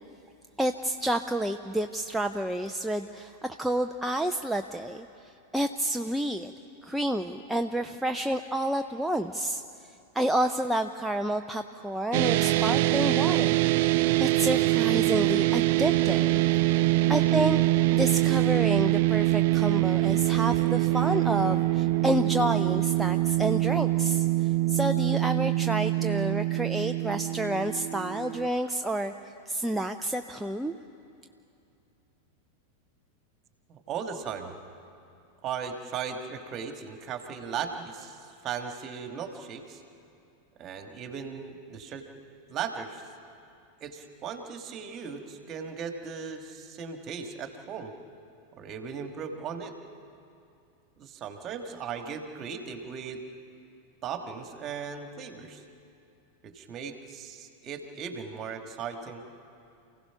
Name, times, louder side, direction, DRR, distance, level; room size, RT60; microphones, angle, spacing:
voice 1, 0.6-6.5 6.8-13.6 13.9-16.5 17.1-17.6 17.9-30.7, right 1 dB, 5° right, 5 dB, 0.6 m, -30 dB
sound 1, 12.1-28.5, right 17 dB, 50° right, 0.5 m, -24 dB
voice 2, 33.7-34.5 35.4-39.8 40.6-42.0 42.5-43.0 43.8-47.9 48.6-49.7 51.0-53.2 54.0-55.6 56.4-59.2, right 6 dB, 30° right, 5 dB, 2.0 m, -37 dB
29.0 x 16.5 x 5.9 m, 2.6 s
figure-of-eight pair, 90°, 0 cm